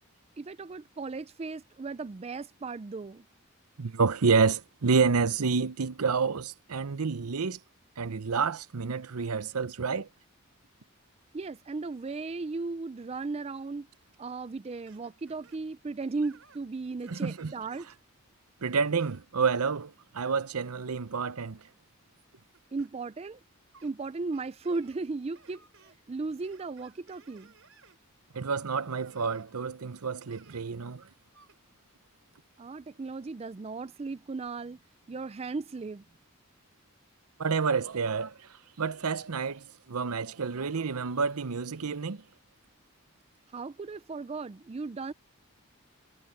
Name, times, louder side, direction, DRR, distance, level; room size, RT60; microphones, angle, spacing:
voice 1, 0.4-3.2 11.3-13.9 14.2-17.9 22.7-23.4 23.8-27.5 32.6-34.8 35.1-36.0 43.5-45.1, right 3 dB, 25° right, 0.4 m, -36 dB
voice 2, 3.8-7.6 8.0-10.1 17.1-17.5 18.6-21.6 28.3-31.0 37.4-38.4 38.8-42.2, right 5 dB, 80° right, 0.8 m, -29 dB
sound 1, 14.9-15.6 16.2-16.7 17.0-17.9 18.9-19.6 21.0-21.2 21.7-22.9 23.7-23.9 24.3-25.1 25.3-26.0 26.4-28.0 28.8-29.5 30.3-30.6 31.3-31.6, right 5 dB, 60° right, 6.1 m, -59 dB
head